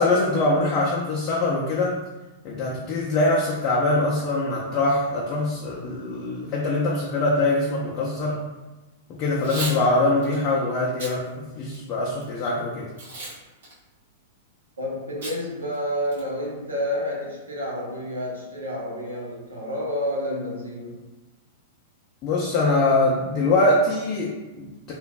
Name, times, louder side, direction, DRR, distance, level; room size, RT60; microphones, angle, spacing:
voice 1, 0.0-2.0 2.4-8.4 9.2-12.9 22.2-24.9, left 2 dB, 40° left, -5 dB, 0.5 m, -23 dB
Packing tape duct tape / Tearing, 9.3-9.8 10.2-10.4 10.9-11.1 11.7-12.2 13.0-13.4 13.6-13.7 15.2-15.4 15.7-15.8 16.1-16.5, right 2 dB, 65° right, 1.2 m, -34 dB
voice 2, 14.8-21.0, left 1 dB, 85° right, -5 dB, 0.8 m, -29 dB
3.0 x 2.4 x 2.2 m, 1.1 s
figure-of-eight pair, 100°, 0 cm